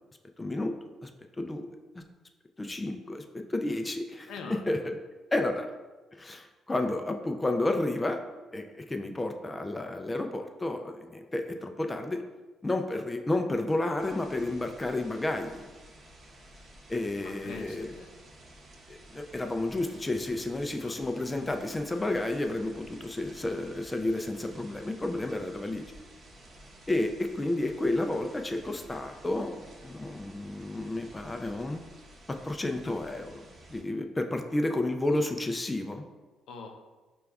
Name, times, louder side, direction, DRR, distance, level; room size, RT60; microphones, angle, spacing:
voice 1, 0.4-0.7 1.0-1.1 1.4-1.7 2.0-2.1 2.6-4.3 4.7-5.0 5.3-5.7 6.2-8.2 8.5-12.2 12.6-15.7 16.9-17.9 18.9-25.9 26.9-31.8 32.4-36.0, left 2 dB, 20° left, 5 dB, 0.3 m, -31 dB
voice 2, 4.3-4.7 17.1-18.1 20.7-21.2 36.5-36.7, left 4 dB, 80° left, 3 dB, 0.5 m, -44 dB
sound 1, 14.0-33.8, right 1 dB, 45° right, 0.7 m, -52 dB
5.0 x 2.3 x 3.4 m, 1.2 s
cardioid pair, 90°, 0 cm